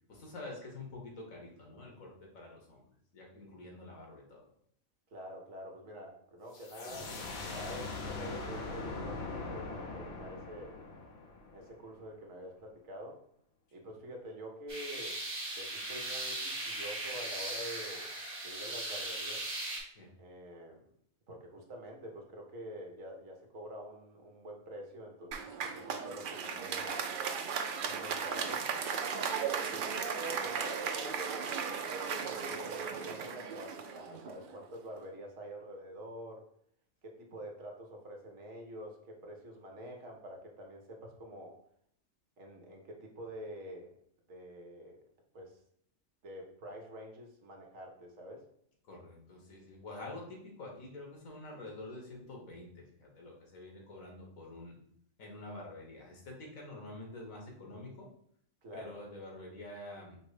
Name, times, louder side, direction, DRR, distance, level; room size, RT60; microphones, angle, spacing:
voice 1, 0.1-2.8 3.1-4.4 19.9-20.1 48.9-54.8 55.2-58.1 58.7-60.2, left 2 dB, 75° left, -1 dB, 1.7 m, -47 dB
voice 2, 5.1-10.7 11.5-13.2 13.7-15.2 15.5-18.1 18.4-19.4 20.2-20.9 21.3-27.0 27.8-28.7 29.7-29.8 30.4-36.4 37.0-41.5 42.4-43.9 44.3-45.0 45.3-45.6 46.2-48.5 58.6-59.0, equal, 70° right, 1 dB, 1.3 m, -47 dB
sound 1, 6.5-12.1, left 3 dB, 60° left, 0.8 m, -41 dB
sound 2, 14.7-19.8, right 2 dB, 40° right, 1.5 m, -38 dB
Applause, 25.3-34.7, right 6 dB, 90° right, 0.4 m, -36 dB
5.2 x 2.1 x 4.8 m, 0.67 s
omnidirectional pair, 1.4 m